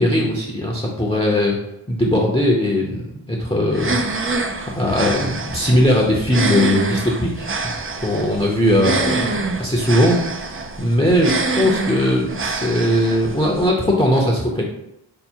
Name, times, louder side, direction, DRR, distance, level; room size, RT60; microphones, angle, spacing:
voice 1, 0.0-1.6 1.9-4.0 4.3-4.4 4.7-10.3 10.8-14.6, left 1 dB, 10° left, -2 dB, 0.7 m, -19 dB
sound 1, 3.7-13.7, right 3 dB, 30° right, 0.4 m, -26 dB
5.6 x 2.1 x 4.4 m, 0.81 s
wide cardioid pair, 65°, 50 cm